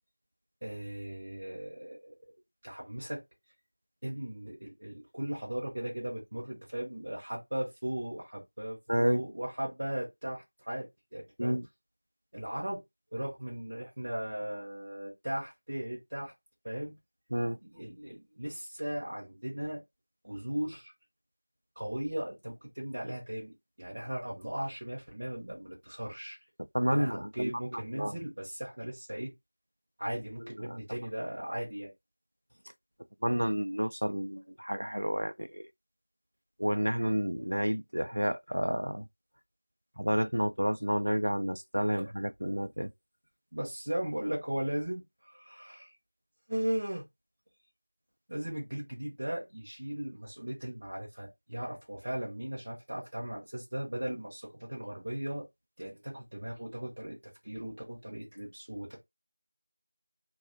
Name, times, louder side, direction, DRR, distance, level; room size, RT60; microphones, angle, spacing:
voice 1, 0.6-2.1 2.6-3.2 4.0-11.6 12.3-12.8 13.1-16.3 16.6-16.9 17.6-19.8 20.2-20.9 21.8-26.4 26.9-29.3 30.0-31.9 42.0-42.1 43.5-45.9 46.5-47.1 48.3-55.5 55.8-59.0, right 1 dB, 25° right, 0.7 m, -37 dB
voice 2, 8.9-9.2 11.4-11.6 17.3-17.6 26.7-28.1 30.4-30.8 33.2-35.7 36.6-39.1 40.0-42.9, equal, 75° right, 0.3 m, -30 dB
2.6 x 2.1 x 2.5 m
figure-of-eight pair, 180°, 0 cm